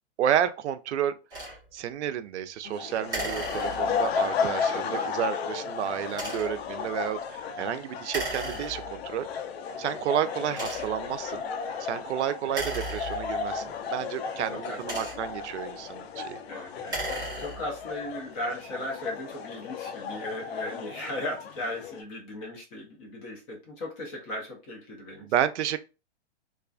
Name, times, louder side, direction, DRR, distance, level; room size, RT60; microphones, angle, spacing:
voice 1, 0.2-1.1 1.7-9.3 9.8-11.4 11.8-16.4 25.2-25.8, right 10 dB, 80° right, 0.5 m, -31 dB
sound 1, 1.3-1.6 3.1-4.1 6.1-6.6 8.1-9.1 9.8-9.9 10.5-11.1 12.4-13.6 14.6-15.5 16.7-17.8, right 2 dB, 10° right, 1.0 m, -36 dB
sound 2, 2.6-22.0, left 6 dB, 65° left, 0.5 m, -34 dB
voice 2, 4.7-5.1 14.5-15.1 16.5-17.0 17.4-25.3, left 1 dB, 15° left, 0.4 m, -37 dB
2.4 x 2.3 x 2.3 m
hypercardioid pair, 150°, 34 cm